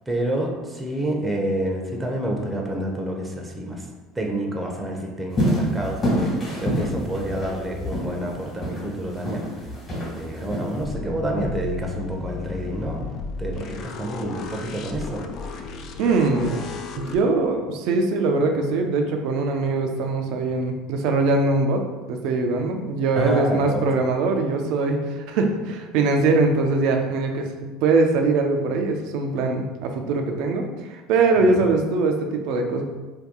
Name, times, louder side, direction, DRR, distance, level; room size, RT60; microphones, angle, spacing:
voice 1, 0.1-3.9 4.2-9.4 9.9-13.1 13.4-15.2 23.1-23.8 31.4-31.7, right 1 dB, 15° right, 1 dB, 0.6 m, -28 dB
sound 1, 5.4-10.8, equal, 35° left, 1.3 m, -26 dB
sound 2, 10.8-17.2, left 4 dB, 50° left, 0.3 m, -34 dB
voice 2, 16.0-16.6 17.0-21.8 22.1-27.5 27.8-32.8, right 3 dB, 60° right, 4 dB, 0.4 m, -22 dB
2.7 x 2.2 x 3.6 m, 1.2 s
hypercardioid pair, 70°, 0 cm